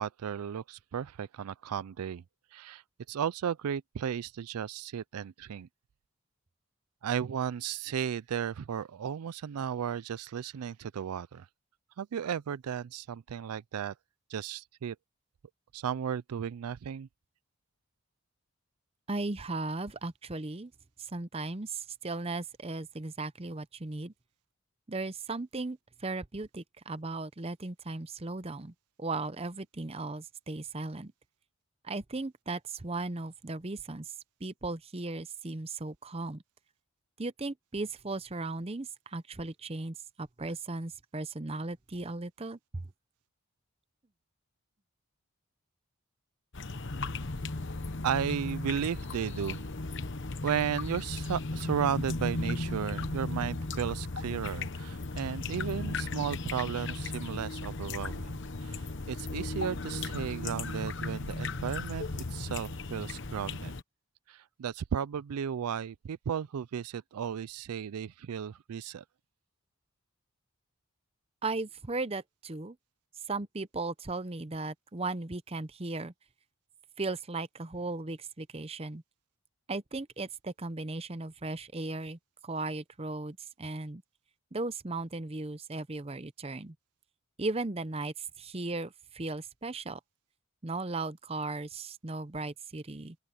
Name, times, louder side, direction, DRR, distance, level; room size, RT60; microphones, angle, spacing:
voice 1, 0.0-2.2 2.5-2.8 3.1-5.7 7.0-11.5 12.0-13.9 14.3-15.0 15.7-17.1 48.0-49.6 50.4-63.7 64.3-69.0, right 8 dB, 85° right, 0.4 m, -34 dB
voice 2, 19.1-20.7 21.0-24.1 24.9-28.7 29.0-31.1 31.8-34.1 34.4-36.4 37.2-42.9 71.4-72.8 73.3-76.1 77.0-79.0 79.7-84.0 84.5-86.7 87.4-90.0 90.6-93.2, right 3 dB, 25° right, 0.7 m, -37 dB
sound 1, 46.5-63.8, left 3 dB, 55° left, 1.1 m, -36 dB
open air
head